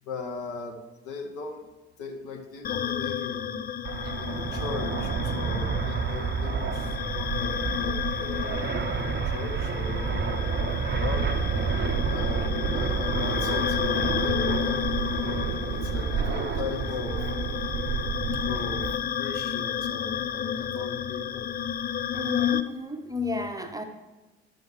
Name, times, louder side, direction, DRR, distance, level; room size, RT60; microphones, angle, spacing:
voice 1, 0.0-1.7 2.0-3.7 4.2-11.3 12.1-15.3 15.7-17.3 18.4-21.5, left 4 dB, 55° left, 3 dB, 1.4 m, -38 dB
sound 1, 2.6-22.6, left 9 dB, 30° left, 0.5 m, -32 dB
Fixed-wing aircraft airplane, 3.8-19.0, right 6 dB, 35° right, 0.8 m, -29 dB
voice 2, 22.1-23.8, left 4 dB, 10° right, 5 dB, 0.9 m, -31 dB
11.5 x 7.0 x 4.9 m, 1.2 s
figure-of-eight pair, 50°, 33 cm